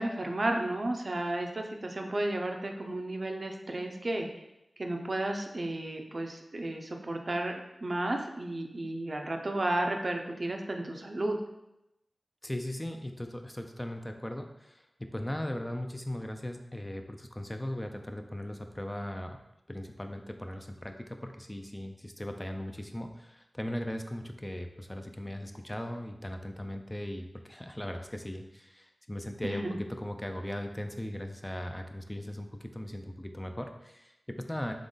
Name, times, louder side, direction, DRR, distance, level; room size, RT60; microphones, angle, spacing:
voice 1, 0.0-4.4 4.8-7.5 7.8-11.4 29.4-29.8, right 1 dB, 55° right, 3 dB, 0.5 m, -33 dB
voice 2, 12.4-19.4 19.7-34.7, left 1 dB, 15° left, 5 dB, 0.5 m, -38 dB
3.7 x 3.1 x 3.8 m, 0.88 s
cardioid pair, 40°, 0 cm